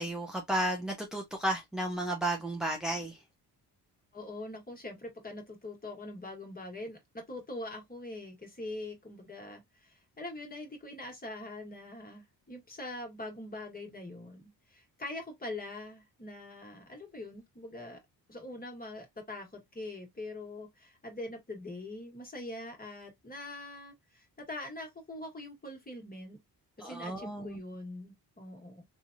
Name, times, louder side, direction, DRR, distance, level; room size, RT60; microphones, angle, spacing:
voice 1, 0.0-3.2 26.8-27.6, right 1 dB, ahead, 0.5 m, -33 dB
voice 2, 4.1-18.0 18.3-26.4 26.8-28.8, left 2 dB, 20° left, 1.4 m, -43 dB
3.2 x 2.4 x 2.5 m
cardioid pair, 90°, 41 cm